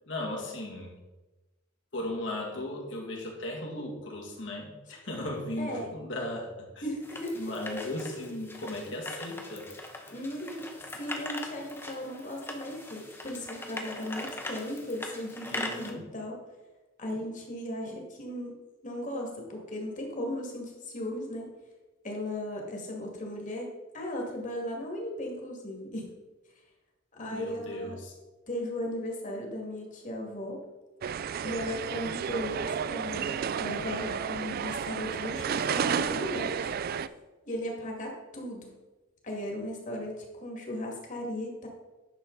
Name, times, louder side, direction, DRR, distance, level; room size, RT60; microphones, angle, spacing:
voice 1, 0.1-1.0 1.9-6.8 7.3-9.7 15.5-16.1 27.2-28.1, left 1 dB, 70° left, -2 dB, 2.2 m, -37 dB
voice 2, 5.6-5.9 6.8-7.4 10.1-10.7 10.9-16.4 17.0-18.6 18.8-21.5 22.0-23.7 23.9-26.1 27.2-28.0 28.5-30.6 31.4-36.7 37.4-38.7 39.2-41.7, left 1 dB, 40° left, 0 dB, 2.2 m, -36 dB
sound 1, 7.0-15.9, left 1 dB, 10° left, 0.9 m, -41 dB
sound 2, 31.0-37.1, right 7 dB, 50° right, 0.3 m, -32 dB
10.5 x 6.5 x 4.0 m, 1.1 s
head